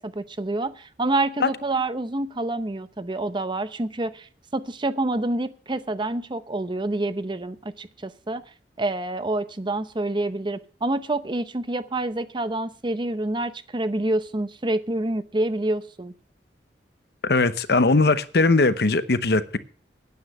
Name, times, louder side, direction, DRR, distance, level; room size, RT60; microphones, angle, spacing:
voice 1, 0.0-8.4 8.8-16.1, right 2 dB, 25° right, 0.7 m, -27 dB
voice 2, 17.2-19.6, left 3 dB, 65° left, 0.9 m, -20 dB
9.6 x 9.5 x 7.8 m
head